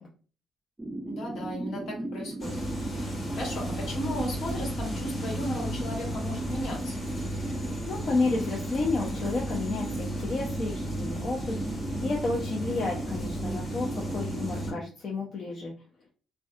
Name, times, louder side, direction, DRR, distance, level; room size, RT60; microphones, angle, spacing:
sound 1, 0.8-14.8, right 1 dB, 15° right, 0.4 m, -36 dB
voice 1, 1.0-2.6 2.9-7.0, left 1 dB, 70° left, 0 dB, 1.2 m, -36 dB
sound 2, 2.4-14.7, equal, 35° left, 0.9 m, -35 dB
voice 2, 7.9-15.7, left 3 dB, 50° left, -2 dB, 0.5 m, -31 dB
2.5 x 2.2 x 2.4 m, 0.39 s
cardioid pair, 90°, 0 cm